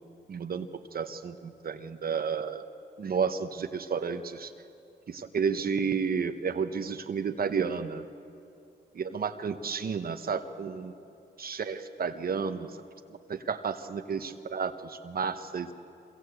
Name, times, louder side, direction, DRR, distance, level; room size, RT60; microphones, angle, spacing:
voice 1, 0.3-0.7 0.9-2.6 3.0-4.5 5.1-8.0 8.9-10.9 11.4-12.7 13.3-15.7, right 6 dB, 55° right, 8 dB, 1.0 m, -31 dB
24.5 x 23.0 x 8.1 m, 2.7 s
cardioid pair, 105°, 19 cm